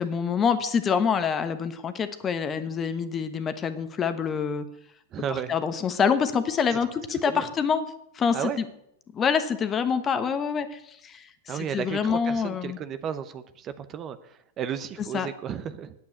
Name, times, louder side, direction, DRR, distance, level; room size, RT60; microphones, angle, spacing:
voice 1, 0.0-4.7 5.3-7.8 8.1-8.5 9.1-12.8 15.1-15.3, left 6 dB, 25° left, 10 dB, 1.1 m, -26 dB
voice 2, 5.1-5.5 6.7-6.8 7.1-7.5 8.3-8.6 11.5-15.9, right 8 dB, 30° right, 12 dB, 0.8 m, -33 dB
8.7 x 8.2 x 8.6 m, 0.75 s
hypercardioid pair, 125°, 0 cm